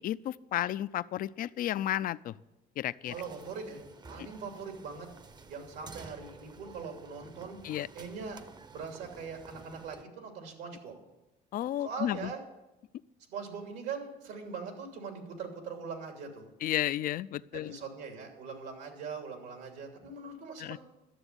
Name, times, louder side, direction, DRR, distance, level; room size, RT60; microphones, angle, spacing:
voice 1, 0.0-2.4 2.8-3.1 7.6-7.9 11.5-12.3 16.6-17.7 20.6-20.8, left 12 dB, 55° left, 17 dB, 0.4 m, -32 dB
sound 1, 3.0-10.0, right 4 dB, 25° right, 0.7 m, -52 dB
voice 2, 3.1-3.8 4.1-5.1 5.5-7.6 7.9-8.4 8.7-10.9 11.8-12.4 13.3-16.5 17.5-20.8, right 5 dB, 85° right, 3 dB, 3.0 m, -41 dB
13.0 x 7.0 x 9.7 m, 0.98 s
cardioid pair, 110°, 17 cm